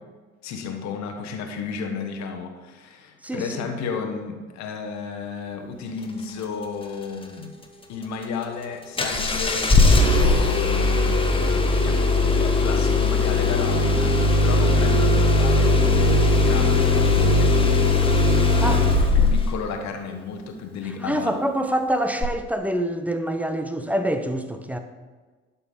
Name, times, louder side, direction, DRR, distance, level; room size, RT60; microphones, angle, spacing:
voice 1, 0.4-7.5 7.9-17.8 18.9-21.3, left 5 dB, 45° left, 4 dB, 1.2 m, -33 dB
voice 2, 3.2-3.7 18.6-18.9 21.0-24.8, right 1 dB, 5° right, 7 dB, 0.6 m, -26 dB
Engine starting, 9.0-19.6 22.2-22.3, left 2 dB, 15° left, 1.1 m, -19 dB
11.5 x 5.8 x 3.6 m, 1.3 s
figure-of-eight pair, 60°, 40 cm